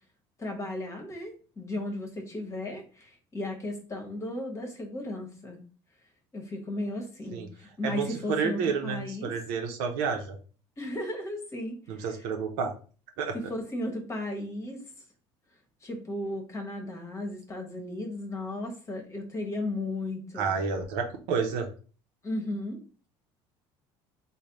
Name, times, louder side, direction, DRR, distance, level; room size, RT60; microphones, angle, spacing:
voice 1, 0.4-5.6 6.3-9.3 10.8-12.2 13.3-14.8 15.8-20.5 22.2-22.8, left 1 dB, 25° left, 3 dB, 1.0 m, -35 dB
voice 2, 7.8-10.4 11.9-12.7 13.2-13.4 20.4-21.6, right 5 dB, 85° right, 3 dB, 0.6 m, -30 dB
3.2 x 2.1 x 3.9 m, 0.38 s
cardioid pair, 120°, 12 cm